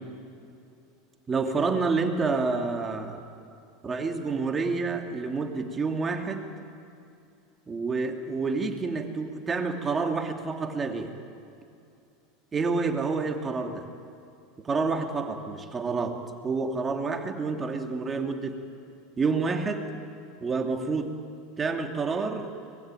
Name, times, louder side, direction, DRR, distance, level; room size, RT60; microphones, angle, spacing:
voice 1, 1.3-3.2 3.8-6.5 7.7-11.1 12.5-13.9 14.6-18.6 19.2-19.9 20.4-21.1 21.6-22.5, right 4 dB, 25° right, 4 dB, 2.8 m, -28 dB
24.5 x 20.5 x 9.2 m, 2.5 s
hypercardioid pair, 90°, 0 cm